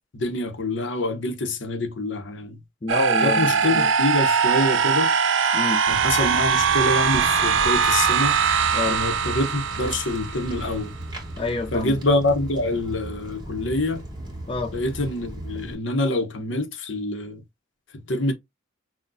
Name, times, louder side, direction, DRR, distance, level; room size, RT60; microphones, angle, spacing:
voice 1, 0.1-2.6 3.2-5.1 5.9-8.4 8.9-11.0 11.7-14.0 14.7-17.4 18.1-18.3, left 2 dB, 70° left, 0.9 m, -26 dB
voice 2, 2.8-3.9 5.5-5.8 8.7-9.0 11.4-12.0 14.5-14.7, left 2 dB, 30° left, 0.6 m, -27 dB
sound 1, 2.9-10.8, right 6 dB, 75° right, 0.6 m, -21 dB
Walk footsteps, 5.9-15.7, right 1 dB, 25° right, 1.7 m, -36 dB
6.0 x 2.3 x 2.6 m
head